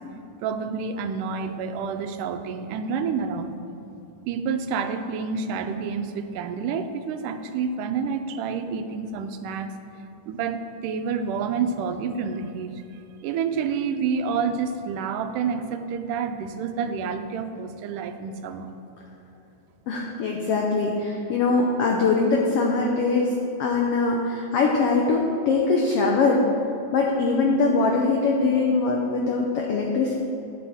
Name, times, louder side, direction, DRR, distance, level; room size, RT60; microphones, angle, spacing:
voice 1, 0.4-3.5 4.3-9.7 10.3-10.6 10.8-12.8 13.2-18.7, right 6 dB, 85° right, 8 dB, 2.2 m, -28 dB
voice 2, 19.9-26.4 26.9-30.1, left 3 dB, 85° left, 0 dB, 1.3 m, -22 dB
11.0 x 9.2 x 3.5 m, 2.9 s
omnidirectional pair, 3.6 m